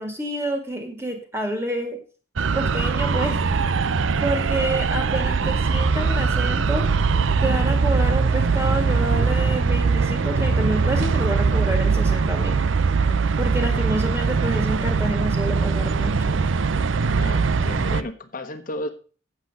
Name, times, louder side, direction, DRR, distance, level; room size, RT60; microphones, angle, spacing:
voice 1, 0.0-2.0 2.5-3.4 4.2-6.9 7.4-12.6 13.4-16.4, right 1 dB, 10° right, 4 dB, 1.9 m, -28 dB
sound 1, 2.4-18.0, right 4 dB, 70° right, 0.5 m, -21 dB
voice 2, 17.1-18.9, left 1 dB, 40° left, 7 dB, 1.3 m, -33 dB
8.2 x 7.7 x 6.4 m, 0.38 s
head